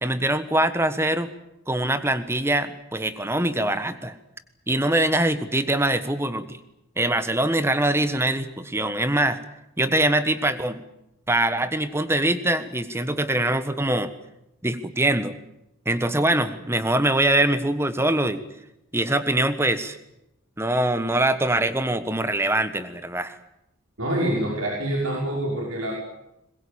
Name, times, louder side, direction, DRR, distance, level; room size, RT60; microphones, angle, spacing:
voice 1, 0.0-1.3 1.7-4.1 4.7-6.6 7.0-9.4 9.8-10.8 11.3-14.1 14.6-15.3 15.8-18.4 18.9-20.0 20.6-23.4, right 1 dB, 10° right, 11 dB, 1.3 m, -23 dB
voice 2, 24.0-25.9, right 1 dB, 90° right, -2 dB, 5.9 m, -26 dB
21.5 x 21.5 x 8.8 m, 0.86 s
head